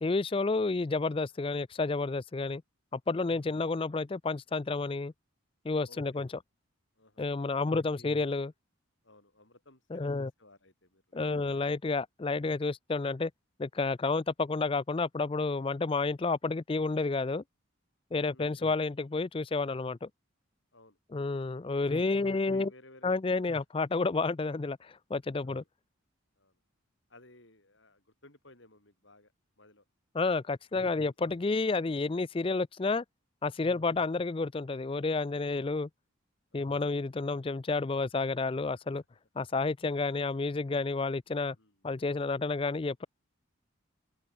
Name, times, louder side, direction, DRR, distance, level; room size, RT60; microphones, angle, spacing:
voice 1, 0.0-2.6 2.9-5.1 5.6-6.3 7.2-8.5 9.9-10.3 11.1-13.3 13.6-17.4 18.1-20.1 21.1-22.7 23.0-25.6 30.1-33.0 33.4-35.9 36.5-39.0 39.4-41.6 41.8-43.1, left 3 dB, 25° left, 0.4 m, -30 dB
voice 2, 3.3-3.6 5.9-6.2 7.0-7.2 7.7-8.2 9.0-11.5 18.3-18.8 20.7-21.2 21.9-23.2 23.5-23.6 25.4-25.7 26.4-26.6 27.1-29.8 36.5-36.7 41.5-41.9, left 2 dB, 65° left, 5.9 m, -59 dB
head